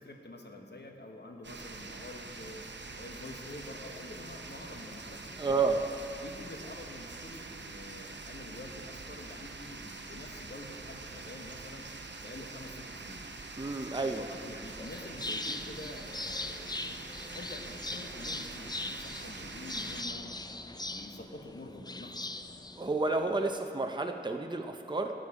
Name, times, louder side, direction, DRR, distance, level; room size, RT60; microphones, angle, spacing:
voice 1, 0.0-2.6 3.0-5.6 6.2-11.9 12.2-13.2 14.0-16.7 17.3-20.3 20.9-22.2, left 2 dB, 65° left, 2 dB, 1.2 m, -47 dB
sound 1, 1.4-20.0, right 3 dB, 80° right, 0.6 m, -45 dB
voice 2, 5.4-5.8 13.6-14.2 22.8-25.1, right 3 dB, 25° right, 4 dB, 0.6 m, -30 dB
sound 2, 14.6-23.6, left 2 dB, 20° left, 0.4 m, -41 dB
17.5 x 6.7 x 4.8 m, 2.8 s
wide cardioid pair, 45°, 18 cm